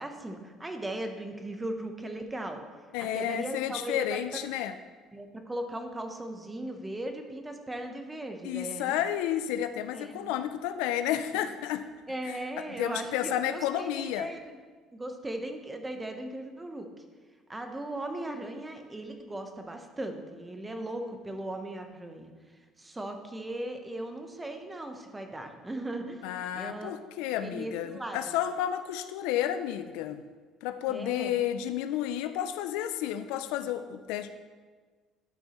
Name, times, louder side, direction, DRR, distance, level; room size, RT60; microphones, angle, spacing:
voice 1, 0.0-2.6 3.0-4.2 5.1-9.0 9.9-10.3 11.3-11.4 12.1-14.4 14.9-16.9 17.5-26.9 27.4-28.3 30.9-31.4, right 1 dB, 15° right, 5 dB, 0.9 m, -38 dB
voice 2, 2.9-4.7 8.4-11.9 12.3-12.4 12.8-14.3 26.2-30.2 30.6-34.3, left 11 dB, 90° left, 10 dB, 0.4 m, -31 dB
12.5 x 5.4 x 3.0 m, 1.5 s
cardioid pair, 110°, 0 cm